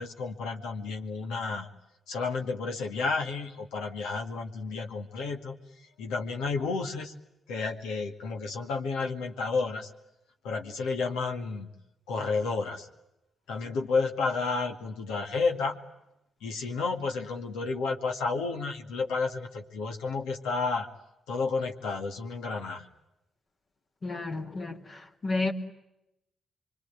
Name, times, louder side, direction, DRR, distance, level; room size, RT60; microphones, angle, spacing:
voice 1, 0.0-1.7 2.1-5.6 6.0-7.1 7.5-9.9 10.4-11.7 12.1-12.9 13.5-15.8 16.4-20.9 21.3-22.9, left 4 dB, 85° left, 2.2 m, -31 dB
voice 2, 24.0-25.5, left 3 dB, 50° left, 3.2 m, -32 dB
25.5 x 24.5 x 9.5 m
supercardioid pair, 50°, 0 cm